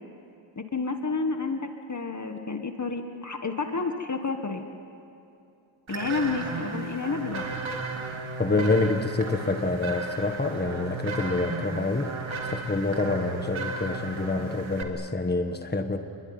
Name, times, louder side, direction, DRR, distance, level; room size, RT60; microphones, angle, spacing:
voice 1, 0.6-4.7 5.9-7.5, left 4 dB, 35° left, 5 dB, 1.5 m, -30 dB
sound 1, 5.9-14.8, right 3 dB, 70° right, 2.3 m, -35 dB
voice 2, 8.4-12.1 12.5-16.0, left 3 dB, 20° left, 6 dB, 1.5 m, -27 dB
27.5 x 22.0 x 9.5 m, 2.7 s
wide cardioid pair, 130°, 49 cm